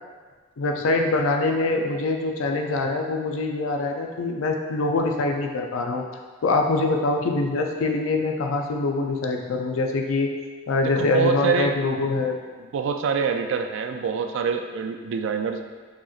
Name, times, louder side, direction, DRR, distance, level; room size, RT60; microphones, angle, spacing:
voice 1, 0.6-6.0 6.4-10.3 10.7-12.4, left 3 dB, 75° left, 3 dB, 0.4 m, -24 dB
voice 2, 10.8-12.1 12.7-15.6, right 5 dB, 65° right, 6 dB, 0.3 m, -25 dB
4.8 x 3.0 x 2.4 m, 1.5 s
head